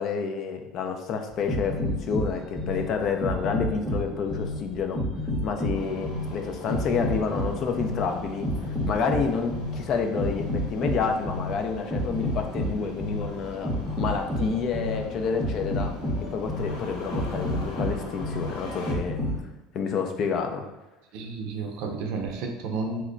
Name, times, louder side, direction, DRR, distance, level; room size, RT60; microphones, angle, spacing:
voice 1, 0.0-5.0 5.4-8.5 8.9-10.5 10.7-13.7 14.0-15.9 16.3-19.2 19.7-20.7, left 5 dB, 45° left, 5 dB, 0.4 m, -29 dB
sound 1, 1.3-19.4, equal, 10° right, 0.7 m, -30 dB
Engine starting, 5.7-18.9, left 2 dB, 85° left, 0.7 m, -41 dB
voice 2, 21.1-23.0, right 4 dB, 70° right, 2 dB, 0.5 m, -31 dB
3.0 x 2.2 x 3.8 m, 1.1 s
supercardioid pair, 125°, 0 cm